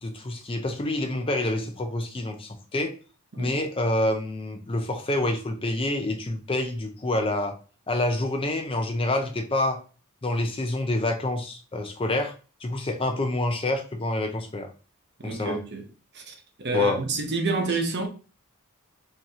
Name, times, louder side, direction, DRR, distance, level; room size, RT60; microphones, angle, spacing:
voice 1, 0.0-2.9 3.4-7.5 7.9-9.8 10.2-12.3 12.6-14.7 15.2-15.6 16.7-17.0, left 1 dB, 25° left, 0.6 m, -27 dB
voice 2, 15.2-15.9 16.1-18.1, right 2 dB, 50° right, 0.9 m, -28 dB
5.0 x 2.9 x 2.8 m
head